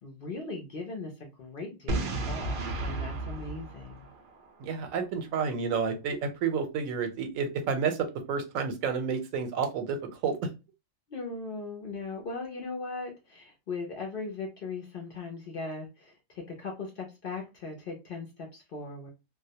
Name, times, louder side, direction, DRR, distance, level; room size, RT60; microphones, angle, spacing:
voice 1, 0.0-4.1 11.1-19.1, left 3 dB, 60° left, 1 dB, 0.6 m, -39 dB
Boom, 1.9-4.7, right 2 dB, 60° right, 0.5 m, -33 dB
voice 2, 4.6-10.5, right 6 dB, 85° right, 7 dB, 1.0 m, -30 dB
2.2 x 2.1 x 2.7 m, 0.27 s
omnidirectional pair, 1.4 m